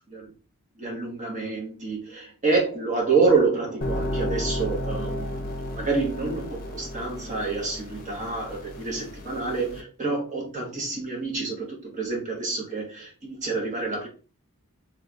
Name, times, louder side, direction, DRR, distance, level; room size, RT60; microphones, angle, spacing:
voice 1, 0.8-14.1, right 4 dB, 35° right, 1.2 m, -27 dB
sound 1, 3.8-9.8, left 1 dB, 40° left, 0.7 m, -33 dB
4.2 x 3.0 x 2.4 m
head